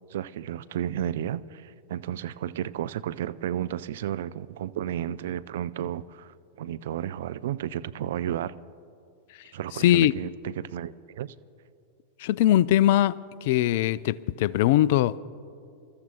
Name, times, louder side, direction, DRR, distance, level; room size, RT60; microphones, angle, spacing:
voice 1, 0.1-8.5 9.5-11.3, right 11 dB, 55° right, 0.4 m, -32 dB
voice 2, 9.8-10.1 12.2-15.2, left 13 dB, 50° left, 0.3 m, -21 dB
26.5 x 13.5 x 2.9 m
figure-of-eight pair, 90°, 0 cm